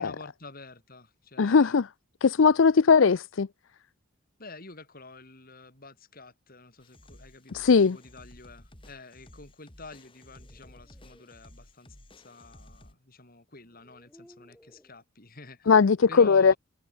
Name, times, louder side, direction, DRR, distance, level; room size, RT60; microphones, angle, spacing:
voice 1, 0.0-1.8 4.4-15.7 16.1-16.6, left 3 dB, 45° left, 4.0 m, -48 dB
voice 2, 1.4-1.9 2.2-3.5 7.5-8.0 15.7-16.5, left 5 dB, 65° left, 0.5 m, -19 dB
sound 1, 6.8-12.9, left 1 dB, 25° left, 3.8 m, -53 dB
sound 2, 10.1-11.3 12.8-12.9 13.6-15.0, equal, 5° left, 6.3 m, -59 dB
head